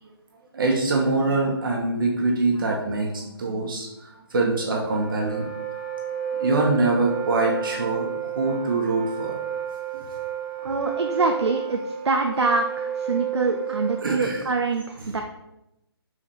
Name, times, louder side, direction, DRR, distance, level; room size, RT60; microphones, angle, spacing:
voice 1, 0.5-5.5 6.4-9.3 14.0-14.4, right 3 dB, 55° right, -1 dB, 1.4 m, -24 dB
Wind instrument woodwind instrument, 4.6-14.5, right 8 dB, 35° right, 0.9 m, -32 dB
voice 2, 10.6-15.2, right 3 dB, 90° right, 4 dB, 0.7 m, -25 dB
4.9 x 4.9 x 4.3 m, 0.87 s
hypercardioid pair, 160°, 14 cm